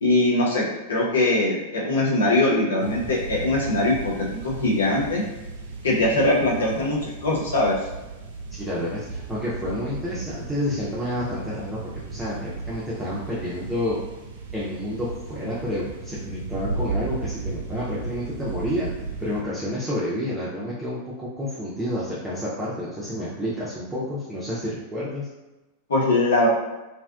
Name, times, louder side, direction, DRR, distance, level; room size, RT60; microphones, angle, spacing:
voice 1, 0.0-0.6 0.9-5.2 5.8-7.8 25.9-26.5, left 2 dB, 65° left, -4 dB, 0.5 m, -21 dB
sound 1, 2.8-19.4, right 3 dB, 60° right, 0.4 m, -35 dB
voice 2, 8.5-11.8 12.1-14.0 14.5-25.3, left 1 dB, 5° right, -9 dB, 0.5 m, -29 dB
2.6 x 2.2 x 2.3 m, 1.1 s
figure-of-eight pair, 90°, 0 cm